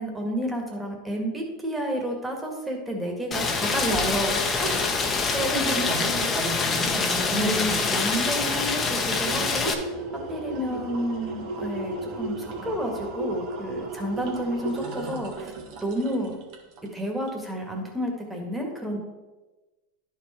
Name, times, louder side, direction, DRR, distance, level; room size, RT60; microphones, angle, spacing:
voice 1, 0.0-5.0 5.3-6.0 7.3-9.7 10.3-15.5 15.8-16.4 16.9-19.0, equal, 5° right, 0 dB, 1.9 m, -30 dB
Rain, 3.3-9.7, left 4 dB, 25° left, 1.1 m, -25 dB
voice 2, 5.5-7.8 10.6-10.9, right 2 dB, 30° right, 0 dB, 2.2 m, -32 dB
sound 1, 7.4-7.5 7.8-16.9 17.3-17.4, right 2 dB, 55° right, 1.5 m, -35 dB
11.0 x 4.7 x 4.3 m, 1.2 s
supercardioid pair, 115°, 0 cm